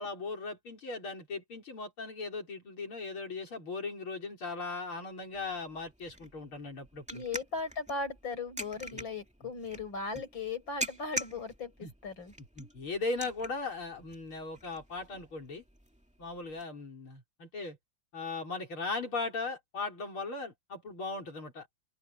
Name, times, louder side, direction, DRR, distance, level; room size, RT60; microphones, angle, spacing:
voice 1, 0.0-7.2 8.9-9.1 11.8-11.9 12.6-15.6 16.2-17.8 18.1-21.7, left 3 dB, 80° left, 6.1 m, -38 dB
sound 1, 5.3-16.6, right 1 dB, 5° right, 2.1 m, -45 dB
voice 2, 7.1-12.3, left 4 dB, 65° left, 6.2 m, -37 dB
open air
omnidirectional pair, 2.3 m